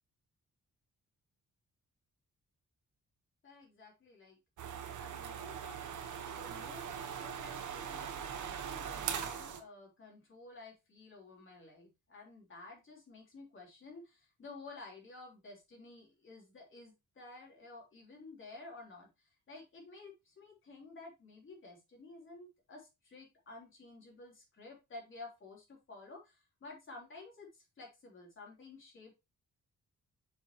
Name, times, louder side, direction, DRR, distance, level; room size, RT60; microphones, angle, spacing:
voice 1, 3.4-4.4 5.0-5.8 6.3-29.1, left 3 dB, 40° left, -1 dB, 3.5 m, -52 dB
sound 1, 4.6-9.6, right 8 dB, 70° right, 1.2 m, -41 dB
7.0 x 6.4 x 3.0 m, 0.24 s
wide cardioid pair, 175°, 31 cm